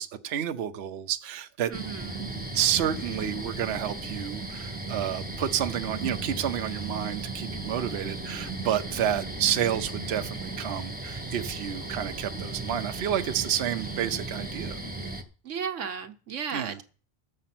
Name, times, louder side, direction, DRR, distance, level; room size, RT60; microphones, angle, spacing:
voice 1, 0.0-1.7 2.5-14.8 16.5-16.8, right 10 dB, 65° right, 0.9 m, -30 dB
sound 1, 1.7-15.2, right 2 dB, 10° right, 1.0 m, -36 dB
voice 2, 1.7-2.3 15.4-16.8, right 7 dB, 85° right, 1.3 m, -35 dB
13.5 x 7.7 x 5.9 m
omnidirectional pair, 1.2 m